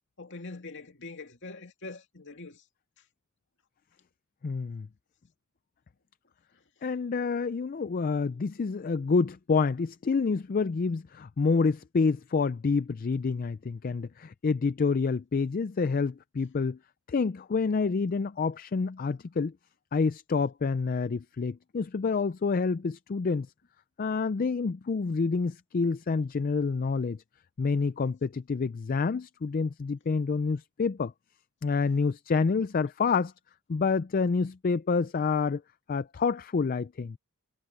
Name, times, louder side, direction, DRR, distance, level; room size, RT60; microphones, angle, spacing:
voice 1, 0.2-2.6, left 3 dB, 55° left, 2.6 m, -43 dB
voice 2, 4.4-4.9 6.8-16.8 17.1-19.5 19.9-23.5 24.0-27.2 27.6-31.1 31.6-33.3 33.7-35.6 35.9-37.2, left 4 dB, 40° left, 0.4 m, -28 dB
head